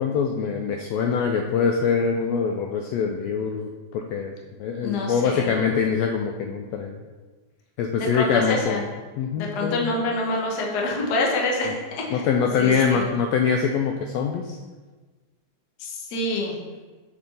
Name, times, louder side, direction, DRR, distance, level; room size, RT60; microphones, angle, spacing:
voice 1, 0.0-4.3 4.6-7.0 7.8-8.8 9.2-9.9 12.1-14.6, left 6 dB, 90° left, 3 dB, 1.4 m, -24 dB
voice 2, 4.8-5.6 8.0-8.8 9.4-12.3 12.6-13.0 15.8-16.6, left 2 dB, 65° left, -1 dB, 1.0 m, -26 dB
6.7 x 5.6 x 3.9 m, 1.3 s
omnidirectional pair, 3.5 m